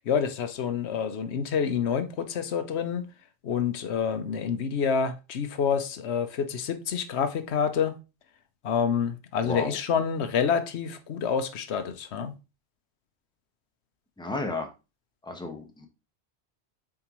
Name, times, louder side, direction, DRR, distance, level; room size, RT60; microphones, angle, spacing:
voice 1, 0.1-3.0 3.4-8.0 8.6-12.3, left 7 dB, 85° left, 1.0 m, -28 dB
voice 2, 9.4-9.8 14.2-14.7 15.2-15.9, left 2 dB, 5° left, 0.9 m, -32 dB
7.4 x 4.5 x 3.0 m
omnidirectional pair, 1.1 m